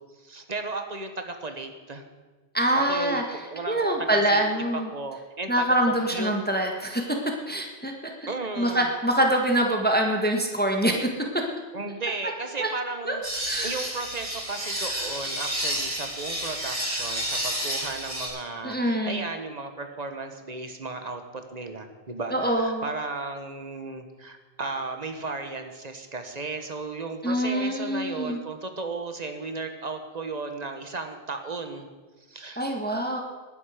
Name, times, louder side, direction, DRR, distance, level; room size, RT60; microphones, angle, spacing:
voice 1, 0.2-2.0 2.7-4.4 4.9-6.3 8.3-8.9 11.7-31.9 32.3-32.7, right 3 dB, 35° right, 6 dB, 1.4 m, -35 dB
voice 2, 2.5-3.2 3.7-4.9 5.5-7.2 7.5-8.1 8.6-11.1 12.6-12.7 13.0-13.2 13.4-13.7 18.6-19.3 22.3-22.9 27.2-28.4 32.6-33.2, right 1 dB, 10° left, 2 dB, 1.5 m, -25 dB
Metal Grinding-Sharpening, 13.2-18.3, right 1 dB, 55° right, 6.6 m, -30 dB
19.5 x 10.5 x 5.1 m, 1.3 s
omnidirectional pair, 1.1 m